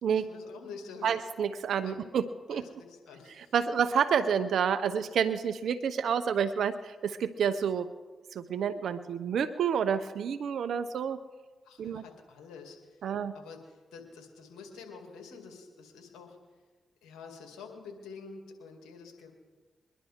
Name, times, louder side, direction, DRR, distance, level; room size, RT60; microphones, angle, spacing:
voice 1, 0.1-1.1 1.8-2.0 2.5-3.5 11.6-16.4 17.0-19.3, left 5 dB, 80° left, 3 dB, 2.3 m, -48 dB
voice 2, 1.0-2.6 3.4-7.9 8.3-11.2 11.8-12.0 13.0-13.3, right 7 dB, 75° right, 12 dB, 0.6 m, -29 dB
22.5 x 11.0 x 3.6 m, 1.3 s
supercardioid pair, 40°, 0 cm